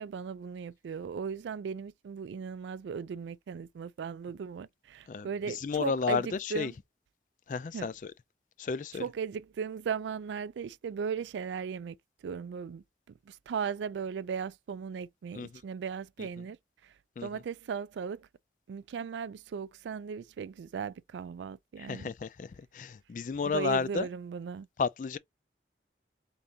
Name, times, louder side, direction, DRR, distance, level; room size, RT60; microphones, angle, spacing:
voice 1, 0.0-6.7 7.7-7.9 8.9-12.0 12.2-16.6 16.8-16.9 17.2-18.3 18.7-22.1 23.4-24.7, right 6 dB, 85° right, 0.3 m, -37 dB
voice 2, 5.5-6.7 7.5-8.1 8.6-9.0 15.3-15.5 17.2-17.3 21.9-24.1 24.8-25.2, left 5 dB, 45° left, 0.3 m, -32 dB
3.8 x 3.6 x 2.7 m
head